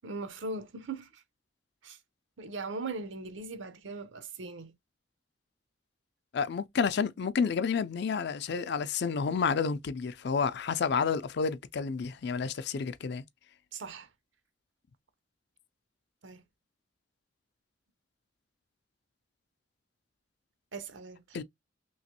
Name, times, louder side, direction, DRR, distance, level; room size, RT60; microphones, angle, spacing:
voice 1, 0.0-1.2 1.8-2.0 2.4-4.7 13.7-14.1 16.2-16.4 20.7-21.4, right 3 dB, 85° right, 0.7 m, -39 dB
voice 2, 6.3-13.2 21.3-21.4, left 5 dB, 65° left, 0.4 m, -30 dB
3.1 x 2.9 x 2.8 m
head